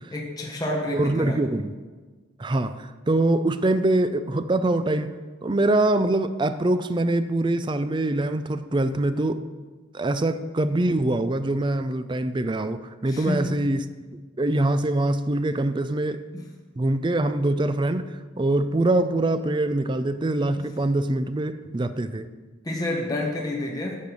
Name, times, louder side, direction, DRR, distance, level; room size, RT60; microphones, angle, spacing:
voice 1, 0.1-1.4 13.1-13.5 16.3-16.4 22.6-24.0, left 1 dB, 20° left, -1 dB, 1.1 m, -29 dB
voice 2, 0.9-1.7 2.4-9.4 9.9-13.9 14.4-16.2 16.8-22.3, right 2 dB, 25° right, 11 dB, 0.4 m, -24 dB
10.5 x 6.6 x 5.4 m, 1.3 s
head